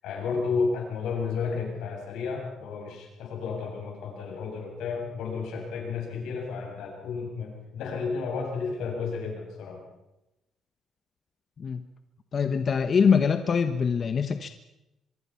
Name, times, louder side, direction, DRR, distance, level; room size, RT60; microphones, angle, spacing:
voice 1, 0.0-9.8, left 5 dB, 90° left, 1 dB, 7.6 m, -32 dB
voice 2, 12.3-14.5, left 6 dB, 45° left, 9 dB, 1.1 m, -23 dB
24.0 x 24.0 x 5.9 m, 0.95 s
cardioid pair, 90°, 0 cm